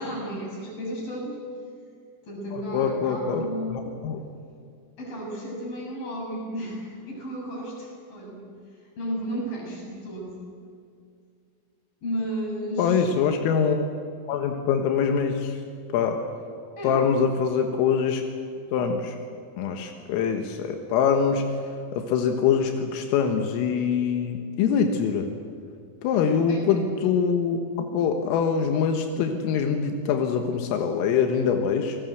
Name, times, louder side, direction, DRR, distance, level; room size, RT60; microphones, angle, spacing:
voice 1, 0.0-1.4 2.2-3.8 5.0-8.4 9.0-10.4 12.0-13.1 16.8-17.0 26.5-26.7, equal, 45° left, -1 dB, 8.3 m, -33 dB
voice 2, 2.5-4.2 12.8-13.9 14.3-15.6 15.9-16.2 16.8-18.3 18.7-19.2 19.6-25.3 26.0-32.0, left 6 dB, 90° left, 4 dB, 4.1 m, -24 dB
29.0 x 19.0 x 8.1 m, 2.3 s
omnidirectional pair, 5.7 m